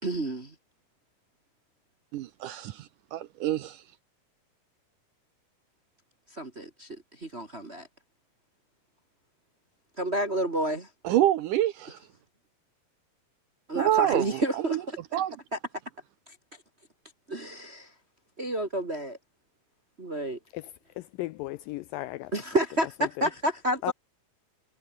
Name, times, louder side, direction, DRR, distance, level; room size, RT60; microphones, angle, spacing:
voice 1, 0.0-0.5 6.3-6.9 7.2-7.9 10.0-10.9 13.7-14.8 15.1-15.2 15.5-15.6 17.3-17.9 18.4-19.2 20.0-20.4 22.3-23.9, right 1 dB, 30° right, 1.1 m, -30 dB
voice 2, 2.1-3.8 11.0-12.0 13.8-14.4 14.7-14.8 15.1-15.4, right 13 dB, 70° right, 2.1 m, -27 dB
voice 3, 21.0-22.3 23.0-23.3 23.8-23.9, left 18 dB, 80° left, 2.0 m, -35 dB
omnidirectional pair, 4.4 m